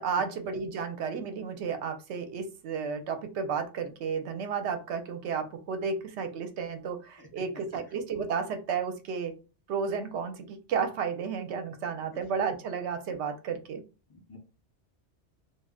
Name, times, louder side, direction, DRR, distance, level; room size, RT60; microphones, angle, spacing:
voice 1, 0.0-9.3 9.7-13.8, right 6 dB, 75° right, 7 dB, 0.8 m, -32 dB
voice 2, 7.2-7.4 7.7-7.8 12.1-12.3 14.1-14.4, left 1 dB, 30° left, 1 dB, 0.4 m, -50 dB
2.3 x 2.1 x 3.5 m, 0.32 s
omnidirectional pair, 1.2 m